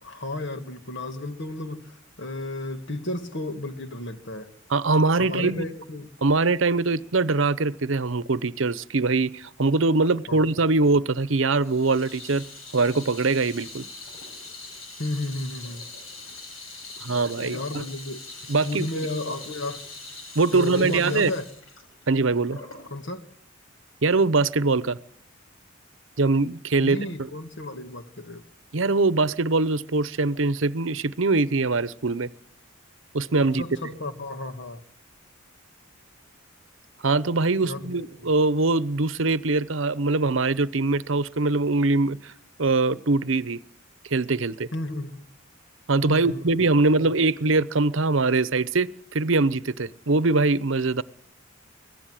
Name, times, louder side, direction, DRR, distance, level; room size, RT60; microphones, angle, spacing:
voice 1, 0.0-4.5 5.2-6.1 10.3-10.4 15.0-15.9 17.1-19.8 20.5-21.5 22.9-23.3 26.8-28.4 33.6-34.8 37.6-38.3 44.7-45.2 46.1-46.5 47.0-47.1, left 2 dB, 60° left, 2.0 m, -33 dB
voice 2, 4.7-5.7 6.2-12.4 12.7-13.9 17.0-17.8 18.5-18.9 20.3-21.3 22.1-22.6 24.0-25.0 26.2-27.0 28.7-32.3 33.1-33.6 37.0-42.3 42.6-43.6 44.1-44.7 45.9-51.0, right 3 dB, 65° right, 0.9 m, -22 dB
Water tap faucet / Sink (filling or washing), 11.6-22.9, left 3 dB, 90° left, 6.4 m, -42 dB
24.5 x 18.5 x 7.7 m
head